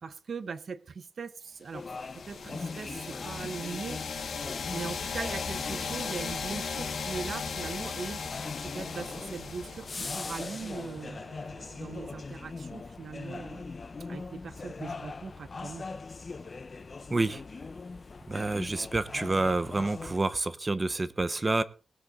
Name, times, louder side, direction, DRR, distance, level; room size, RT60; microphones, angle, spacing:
voice 1, 0.0-1.9 2.1-4.0 4.7-8.2 8.6-11.2 11.8-13.7 14.1-15.9, right 5 dB, 60° right, 0.9 m, -40 dB
sound 1, 1.7-20.2, left 4 dB, 40° left, 0.9 m, -41 dB
sound 2, 1.9-10.6, left 5 dB, 75° left, 2.1 m, -37 dB
sound 3, 2.3-12.2, right 4 dB, 90° right, 2.9 m, -53 dB
voice 2, 17.1-17.4 18.3-21.6, right 2 dB, 25° right, 0.8 m, -28 dB
19.0 x 8.4 x 3.8 m
wide cardioid pair, 115°, 0 cm